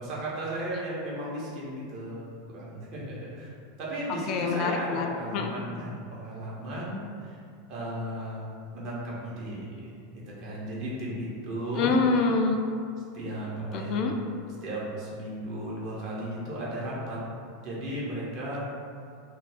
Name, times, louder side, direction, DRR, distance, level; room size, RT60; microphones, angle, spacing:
voice 1, 0.0-2.3 2.5-3.5 3.8-7.4 7.7-12.0 13.1-14.0 14.6-17.2 17.6-18.6, right 1 dB, 45° right, -6 dB, 0.9 m, -35 dB
voice 2, 4.3-5.1 5.3-5.5 11.8-12.6 13.7-14.1, left 4 dB, 45° left, 3 dB, 0.3 m, -25 dB
2.6 x 2.3 x 3.3 m, 2.3 s
figure-of-eight pair, 85°, 0 cm